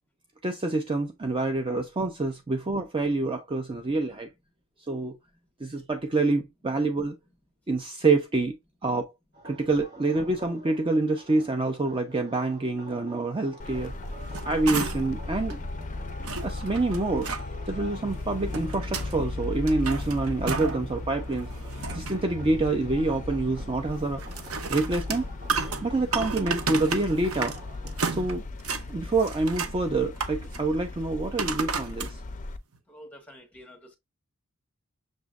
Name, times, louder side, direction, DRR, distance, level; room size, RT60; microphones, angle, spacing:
voice 1, 0.4-4.3 4.9-5.2 5.6-7.2 7.7-8.6 8.8-9.1 9.4-13.9 14.4-15.6 16.4-17.3 17.7-21.5 21.9-24.2 24.7-25.2 25.8-27.5 28.0-28.4 28.9-32.2, right 3 dB, 25° right, 0.5 m, -27 dB
sound 1, 9.3-28.0, right 1 dB, 50° right, 2.2 m, -49 dB
Traffic noise roadway noise, 13.6-32.6, left 2 dB, 35° left, 0.5 m, -37 dB
sound 2, 14.1-15.2 15.5-15.6 16.2-17.4 18.2-19.1 19.5-20.9 21.3-22.3 24.2-27.6 27.9-28.8 29.2-29.8 30.2-30.6 31.4-32.1 32.7-32.8, right 5 dB, 70° right, 0.8 m, -32 dB
voice 2, 32.9-34.0, equal, 5° left, 1.3 m, -48 dB
6.4 x 3.0 x 2.4 m
head